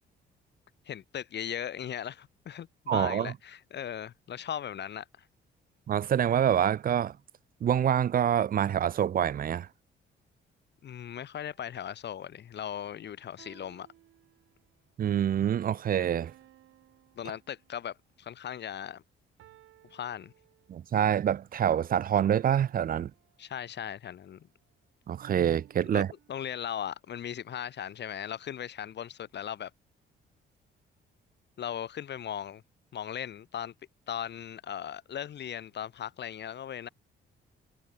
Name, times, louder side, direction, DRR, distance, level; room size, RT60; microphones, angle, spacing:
voice 1, 0.9-5.3 10.8-13.9 17.2-19.0 19.9-20.3 23.4-24.5 25.9-29.7 31.6-32.6 32.9-33.7 34.1-36.9, left 9 dB, 60° left, 2.0 m, -38 dB
voice 2, 2.9-3.3 5.9-7.1 7.6-9.7 15.0-16.3 20.7-23.1 25.1-26.1, right 9 dB, 45° right, 0.5 m, -26 dB
sound 1, 11.4-11.8 13.4-14.9 16.2-18.0 19.4-21.0 22.1-23.8 25.2-26.8, right 14 dB, 85° right, 6.6 m, -59 dB
cardioid pair, 90°, 20 cm